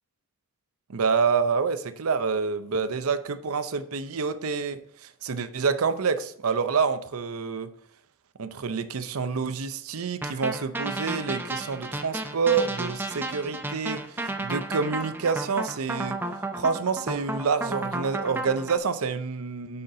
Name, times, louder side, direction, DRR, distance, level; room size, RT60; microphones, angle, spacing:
voice 1, 0.9-7.7 8.4-16.2 16.6-19.8, right 5 dB, 85° right, 0.6 m, -27 dB
sound 1, 10.2-18.8, right 2 dB, 10° right, 0.5 m, -32 dB
7.8 x 5.7 x 3.8 m
head